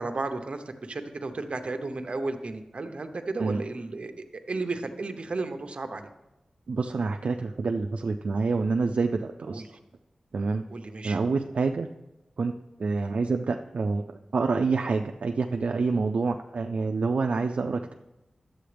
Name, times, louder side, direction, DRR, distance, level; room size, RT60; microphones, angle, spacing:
voice 1, 0.0-6.1 9.5-9.7 10.7-11.2 13.0-13.1, right 3 dB, 60° right, 7 dB, 0.8 m, -34 dB
voice 2, 6.7-9.6 10.3-10.6 11.0-11.9 12.4-12.5 12.8-14.0 14.3-17.9, right 4 dB, 75° right, 5 dB, 0.4 m, -27 dB
11.5 x 7.8 x 3.4 m, 0.98 s
wide cardioid pair, 85°, 2 cm